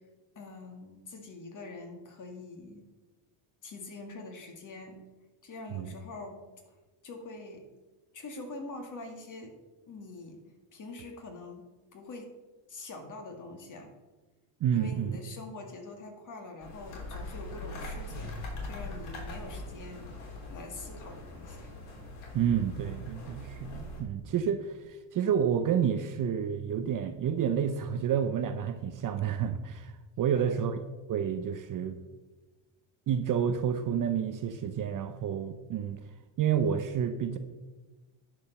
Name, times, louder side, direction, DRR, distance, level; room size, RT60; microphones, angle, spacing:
voice 1, 0.4-2.8 3.6-5.0 5.4-6.4 6.7-6.8 7.0-7.6 8.1-9.5 9.9-10.4 10.7-11.6 11.9-12.3 12.7-13.9 14.7-20.1 20.5-21.7 30.3-30.6, left 2 dB, 35° left, 3 dB, 2.1 m, -44 dB
voice 2, 14.6-15.2 22.3-30.8 31.1-32.0 33.1-36.0 36.4-37.4, right 8 dB, 40° right, 9 dB, 0.6 m, -29 dB
sound 1, 16.6-24.0, left 2 dB, 70° left, 3.5 m, -41 dB
10.5 x 5.0 x 6.7 m, 1.2 s
cardioid pair, 125°, 50 cm